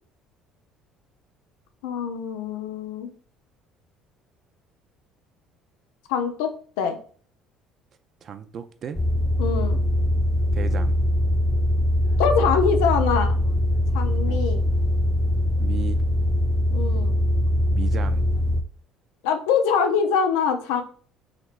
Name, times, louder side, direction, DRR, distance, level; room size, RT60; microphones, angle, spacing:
voice 1, 1.8-3.1 6.1-7.0 9.4-9.8 12.2-13.4 13.9-14.6 16.7-17.1 19.2-20.8, left 6 dB, 85° left, 0.4 m, -24 dB
voice 2, 8.2-9.0 10.5-11.0 14.3-14.4 15.6-16.0 17.7-18.3, right 8 dB, 50° right, 0.4 m, -35 dB
sound 1, 8.9-18.6, left 1 dB, 20° left, 0.4 m, -22 dB
4.1 x 3.0 x 2.5 m
supercardioid pair, 80°, 0 cm